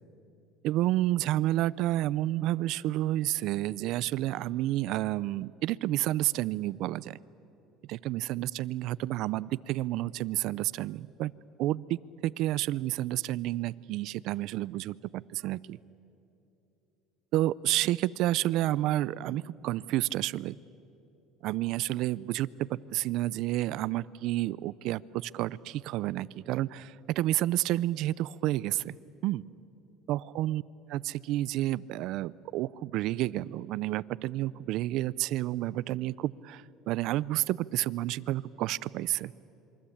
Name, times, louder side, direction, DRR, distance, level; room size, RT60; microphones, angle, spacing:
voice 1, 0.6-7.2 7.9-11.3 11.6-15.8 17.3-20.6 21.4-28.9 29.2-29.4 30.1-30.6 30.9-39.3, right 15 dB, 65° right, 20 dB, 0.5 m, -30 dB
27.5 x 23.5 x 8.7 m, 2.9 s
cardioid pair, 125°, 0 cm